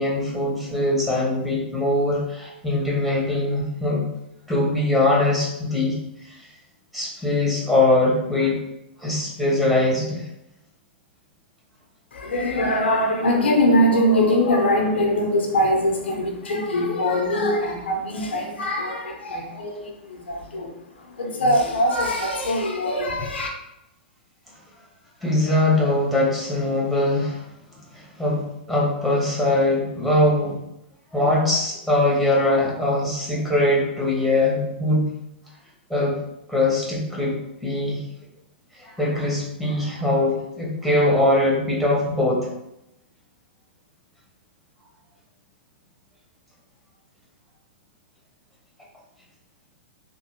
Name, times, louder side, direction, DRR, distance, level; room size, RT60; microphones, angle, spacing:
voice 1, 0.0-4.0 4.5-6.0 6.3-6.4 6.9-8.6 9.0-10.2 25.2-27.5 27.9-30.6 31.1-35.0 35.9-36.2 36.5-37.4 37.6-38.0 38.8-42.4, left 1 dB, ahead, -5 dB, 1.3 m, -22 dB
voice 2, 12.1-23.5, left 1 dB, 80° left, 1 dB, 0.8 m, -22 dB
3.6 x 2.7 x 2.8 m, 0.83 s
hypercardioid pair, 110°, 6 cm